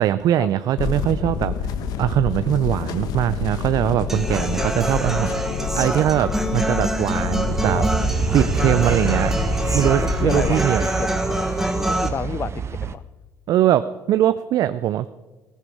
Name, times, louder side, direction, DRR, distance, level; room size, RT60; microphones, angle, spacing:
voice 1, 0.0-1.7 2.0-7.9 8.3-9.4 9.7-10.8 13.5-15.1, right 12 dB, 60° right, 13 dB, 0.5 m, -21 dB
sound 1, 0.8-10.5, left 6 dB, 65° left, 1.1 m, -27 dB
Human voice / Acoustic guitar, 4.1-12.1, right 1 dB, 5° right, 1.4 m, -26 dB
voice 2, 4.2-5.2 7.7-7.9 10.0-11.5 11.8-13.0, left 7 dB, 35° left, 16 dB, 0.4 m, -31 dB
sound 2, 7.5-12.9, right 6 dB, 40° right, 0.8 m, -26 dB
15.5 x 14.0 x 4.9 m, 1.2 s
supercardioid pair, 75°, 7 cm